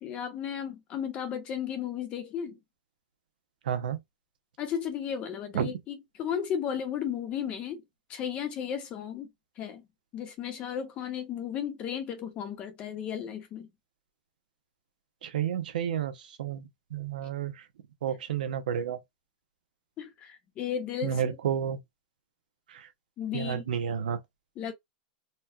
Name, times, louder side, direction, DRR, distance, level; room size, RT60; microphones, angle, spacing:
voice 1, 0.0-2.6 4.6-7.8 8.1-9.3 9.6-9.8 10.1-13.7 20.0-21.3 23.2-23.7 24.6-24.7, left 8 dB, 25° left, 0.8 m, -34 dB
voice 2, 3.7-4.0 5.5-5.7 15.2-16.1 16.4-16.6 16.9-17.5 18.0-19.0 21.0-21.8 23.3-24.2, right 8 dB, 85° right, 0.8 m, -30 dB
4.3 x 2.2 x 2.3 m
supercardioid pair, 165°, 4 cm